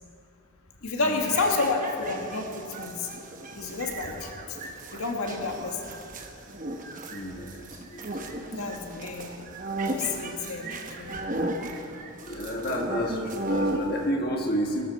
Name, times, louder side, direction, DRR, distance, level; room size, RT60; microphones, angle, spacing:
voice 1, 0.8-3.1 3.5-4.3 4.9-6.0 8.5-9.3 9.9-11.2, left 3 dB, 85° left, 2 dB, 1.7 m, -30 dB
sound 1, 1.0-14.1, right 1 dB, 35° right, 1.0 m, -35 dB
voice 2, 7.1-8.5 12.3-14.9, equal, 45° left, 0 dB, 1.4 m, -31 dB
18.0 x 13.5 x 4.2 m, 2.5 s
head